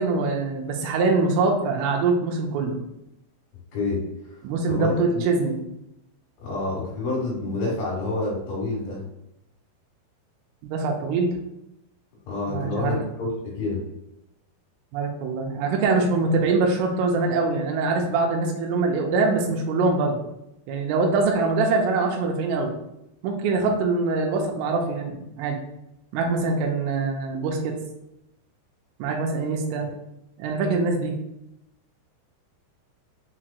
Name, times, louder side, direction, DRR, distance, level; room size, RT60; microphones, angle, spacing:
voice 1, 0.0-2.8 4.4-5.6 10.6-11.3 12.5-13.0 14.9-20.2 20.7-22.7 23.2-25.6 26.1-27.7 29.0-29.9 30.4-31.1, right 3 dB, 85° right, 1 dB, 3.1 m, -23 dB
voice 2, 4.7-5.2 6.4-9.0 12.3-13.8, left 2 dB, 75° left, -5 dB, 2.2 m, -28 dB
7.4 x 2.9 x 2.2 m, 0.85 s
omnidirectional pair, 5.9 m